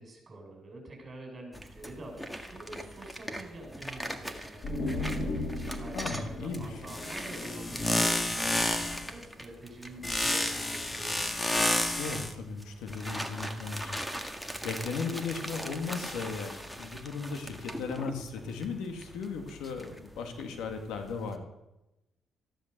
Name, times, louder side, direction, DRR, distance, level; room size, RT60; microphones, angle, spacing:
voice 1, 0.0-11.2, right 1 dB, 35° right, 2 dB, 6.9 m, -47 dB
sound 1, 1.5-21.3, equal, ahead, 1.8 m, -42 dB
sound 2, 4.6-8.2, left 2 dB, 40° left, 4.9 m, -36 dB
voice 2, 5.9-6.8 12.0-14.0 14.6-21.5, left 4 dB, 90° left, 5 dB, 2.3 m, -36 dB
sound 3, 6.9-9.1 10.0-12.3, left 1 dB, 20° left, 1.8 m, -29 dB
14.5 x 12.0 x 6.9 m, 0.92 s
cardioid pair, 90°, 0 cm